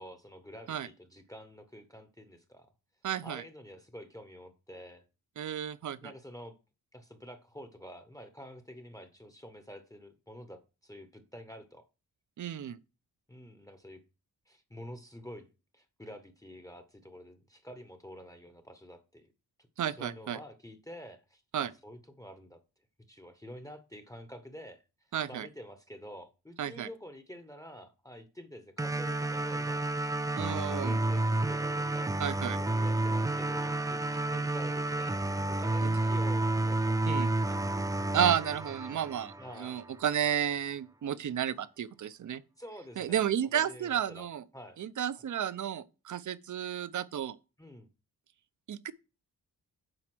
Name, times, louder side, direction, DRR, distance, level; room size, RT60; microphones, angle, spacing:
voice 1, 0.0-2.7 3.2-5.0 6.0-6.6 6.9-11.8 13.3-14.0 14.5-15.5 15.7-19.3 19.9-22.6 23.1-24.8 25.3-30.1 30.8-32.2 32.5-34.0 34.3-37.6 39.4-39.8 42.6-43.2 43.5-44.3 44.5-44.8 47.6-47.9, equal, 10° left, 0.8 m, -48 dB
voice 2, 3.0-3.4 5.4-6.0 12.4-12.8 19.8-20.4 21.5-21.7 25.1-25.5 26.6-26.9 30.4-31.0 32.2-32.6 35.8-36.0 37.1-37.3 38.1-39.3 39.6-42.4 43.0-44.4 44.8-47.3 48.7-48.9, right 10 dB, 55° right, 0.6 m, -32 dB
sound 1, 28.8-39.8, right 2 dB, 10° right, 0.3 m, -30 dB
7.7 x 5.0 x 6.0 m
wide cardioid pair, 130°, 37 cm